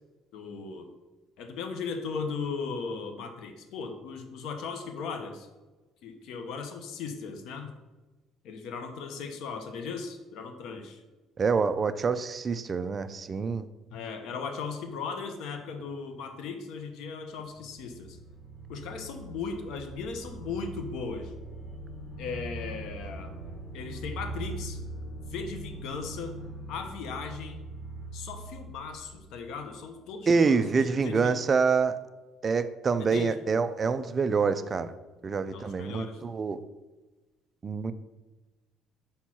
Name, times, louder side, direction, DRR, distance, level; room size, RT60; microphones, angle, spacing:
voice 1, 0.3-0.9 1.4-5.5 6.0-7.7 8.4-11.0 13.9-18.2 18.7-21.3 22.2-23.4 23.7-24.8 25.3-26.4 26.7-27.6 28.1-30.6 30.9-31.3 33.0-33.3 35.5-36.2, left 5 dB, 65° left, 6 dB, 0.8 m, -37 dB
voice 2, 11.4-13.6 30.3-32.0 32.4-34.9 35.2-36.6 37.6-37.9, right 5 dB, 25° right, 11 dB, 0.4 m, -26 dB
sound 1, 17.3-30.0, right 2 dB, 20° left, 1.2 m, -41 dB
5.4 x 4.3 x 6.0 m, 1.1 s
cardioid pair, 150°, 0 cm